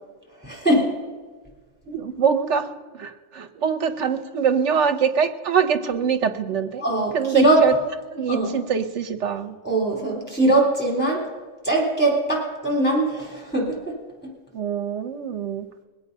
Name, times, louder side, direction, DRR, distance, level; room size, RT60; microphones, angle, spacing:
voice 1, 0.4-0.9 6.8-7.7 8.3-8.5 9.6-11.3 11.6-14.0 14.2-14.3, right 2 dB, 5° left, -1 dB, 3.6 m, -21 dB
voice 2, 1.9-6.8 7.1-7.7 8.1-9.6 14.5-15.7, right 7 dB, 60° right, 10 dB, 1.1 m, -24 dB
21.5 x 8.4 x 5.5 m, 1.4 s
omnidirectional pair, 1.4 m